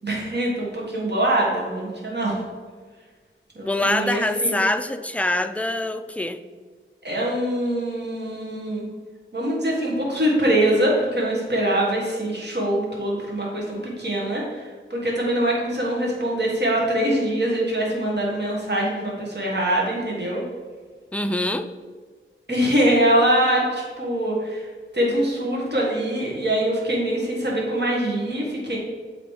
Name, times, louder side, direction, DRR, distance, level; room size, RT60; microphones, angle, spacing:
voice 1, 0.0-2.3 3.5-4.6 7.0-8.9 9.3-20.4 22.5-24.7 24.9-28.8, right 1 dB, 55° right, -4 dB, 1.4 m, -23 dB
voice 2, 3.6-6.4 21.1-21.7, left 1 dB, 5° left, 8 dB, 0.4 m, -24 dB
7.8 x 3.0 x 4.8 m, 1.5 s
wide cardioid pair, 45°, 21 cm